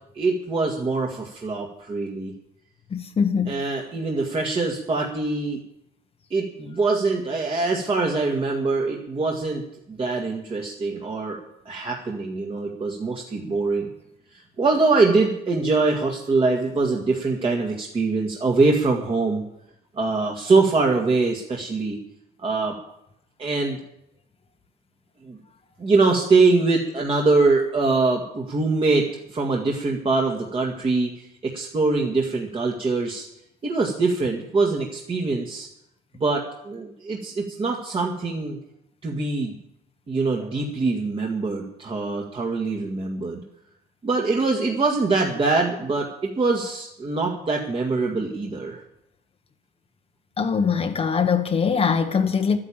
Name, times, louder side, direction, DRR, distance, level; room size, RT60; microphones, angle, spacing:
voice 1, 0.1-2.3 3.5-5.6 6.3-11.4 11.7-13.9 14.3-19.4 19.9-22.0 22.4-22.7 23.4-23.8 25.2-25.4 25.8-33.3 33.6-35.7 36.2-38.6 39.0-39.6 40.1-43.4 44.0-48.8, right 3 dB, 30° right, 1.9 m, -23 dB
voice 2, 2.9-3.5 50.4-52.6, left 6 dB, 35° left, 1.2 m, -22 dB
12.0 x 9.8 x 8.7 m
cardioid pair, 110°, 17 cm